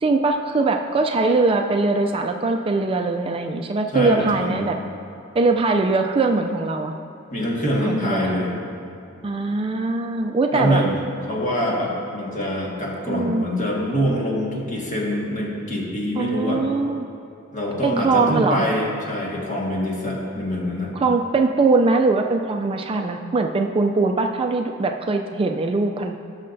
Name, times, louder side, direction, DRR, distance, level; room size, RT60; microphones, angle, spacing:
voice 1, 0.0-4.8 5.3-6.9 7.8-8.4 9.2-10.8 13.1-13.5 16.2-17.1 17.8-18.6 20.9-26.1, right 3 dB, 25° right, 4 dB, 0.3 m, -21 dB
voice 2, 3.9-4.6 7.3-8.5 10.5-11.0 11.3-16.6 17.5-20.9, equal, 40° left, -3 dB, 1.7 m, -24 dB
17.5 x 6.5 x 2.6 m, 2.7 s
head